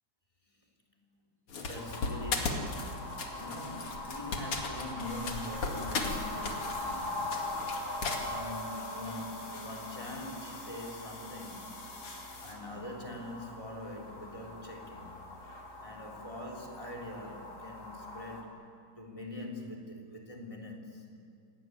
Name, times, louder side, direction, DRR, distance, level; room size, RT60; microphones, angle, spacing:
voice 1, 0.4-1.0 1.6-11.7 12.1-15.2 15.8-18.6 19.0-21.2, left 1 dB, 10° left, 2 dB, 3.3 m, -44 dB
sound 1, 1.5-8.2, left 4 dB, 50° left, 3.0 m, -37 dB
sound 2, 1.7-18.4, left 2 dB, 30° left, 3.8 m, -42 dB
sound 3, 5.0-12.5, left 3 dB, 80° left, 5.4 m, -49 dB
27.0 x 19.5 x 9.3 m, 2.3 s
omnidirectional pair, 3.6 m